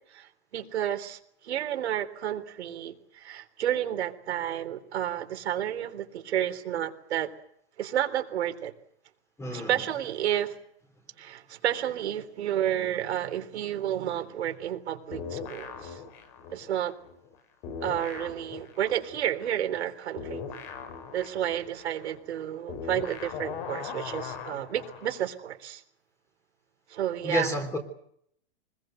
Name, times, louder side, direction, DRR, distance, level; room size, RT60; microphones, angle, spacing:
voice 1, 0.1-1.2 1.4-7.3 7.8-8.7 9.5-10.6 11.2-16.0 16.5-16.9 17.8-20.4 21.1-25.8 26.9-27.5, right 11 dB, 80° right, 3.7 m, -31 dB
voice 2, 9.4-9.7 27.2-27.8, left 1 dB, 10° left, 3.6 m, -29 dB
sound 1, 15.1-17.4 17.6-25.2, left 6 dB, 45° left, 6.2 m, -40 dB
25.0 x 21.0 x 7.9 m
supercardioid pair, 150°, 32 cm